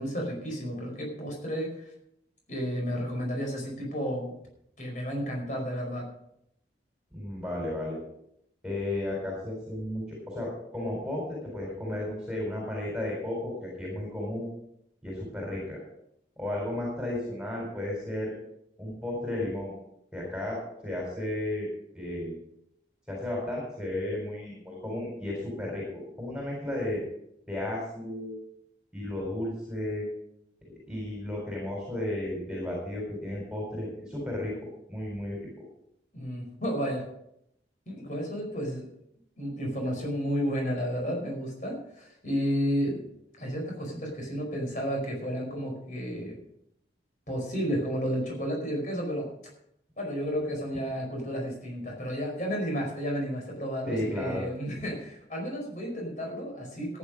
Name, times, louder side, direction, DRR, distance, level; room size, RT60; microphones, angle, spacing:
voice 1, 0.0-1.9 2.5-4.3 4.8-6.1 36.1-37.1 37.9-38.9 39.4-43.0 43.4-46.4 47.3-49.3 50.0-57.0, equal, 45° left, 0 dB, 4.9 m, -32 dB
voice 2, 7.1-8.0 8.6-14.5 15.0-15.8 16.4-18.3 18.8-19.7 20.1-20.6 20.8-21.7 21.9-22.3 23.1-27.0 27.5-28.4 28.9-30.1 30.9-34.5 34.9-35.4 53.9-54.4, left 1 dB, 5° right, -3 dB, 4.0 m, -33 dB
14.5 x 9.5 x 5.2 m, 0.77 s
head